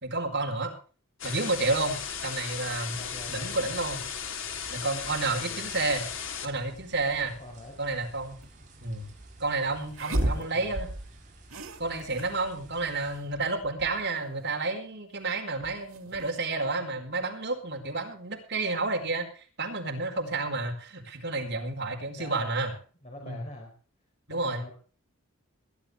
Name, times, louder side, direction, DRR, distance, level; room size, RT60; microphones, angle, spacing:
voice 1, 0.0-0.7 1.2-2.0 2.2-3.0 3.3-4.0 4.7-6.1 6.4-7.3 7.8-8.4 8.8-9.1 9.4-10.9 11.8-22.7 23.2-23.4 24.3-24.6, right 3 dB, 55° right, 3 dB, 4.6 m, -30 dB
sound 1, 1.2-6.5, left 7 dB, 70° left, 3.1 m, -36 dB
sound 2, 1.5-13.2, right 2 dB, 40° right, 6.7 m, -52 dB
voice 2, 3.0-3.7 5.3-5.6 7.4-7.8 10.0-10.8 22.0-22.5 23.0-23.7 24.3-24.7, left 1 dB, 35° left, 0 dB, 4.3 m, -44 dB
sound 3, 8.4-8.5 9.9-11.2 11.5-12.4 12.7-12.8 13.0-14.3 15.6-16.4, right 1 dB, 90° right, 2.4 m, -33 dB
21.0 x 11.5 x 3.4 m, 0.39 s
head